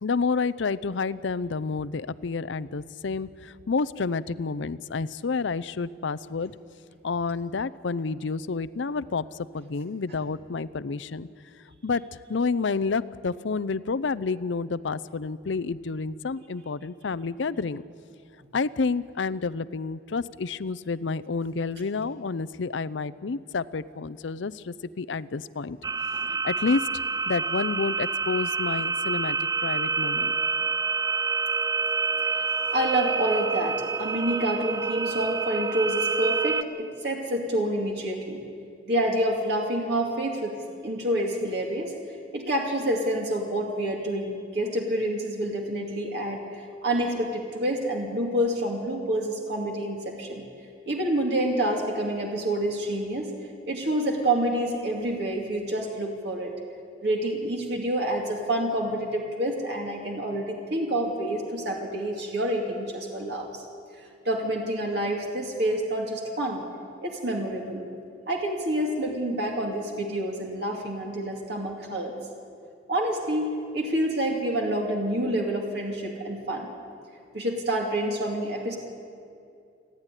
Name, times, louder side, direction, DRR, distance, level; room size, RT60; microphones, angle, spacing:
voice 1, 0.0-6.5 7.0-9.3 9.5-11.3 11.8-12.0 12.3-17.8 18.5-25.8 26.4-26.9 27.3-30.3, left 4 dB, 75° left, 17 dB, 0.6 m, -29 dB
sound 1, 25.8-36.6, right 4 dB, 20° right, 0.4 m, -27 dB
voice 2, 32.7-38.4 38.9-41.9 42.3-50.5 50.9-53.3 53.7-56.5 57.0-63.6 64.2-66.6 67.0-67.9 68.3-72.2 72.9-76.7 77.3-78.8, right 1 dB, 60° right, 0 dB, 2.5 m, -28 dB
29.0 x 10.5 x 9.9 m, 2.5 s
head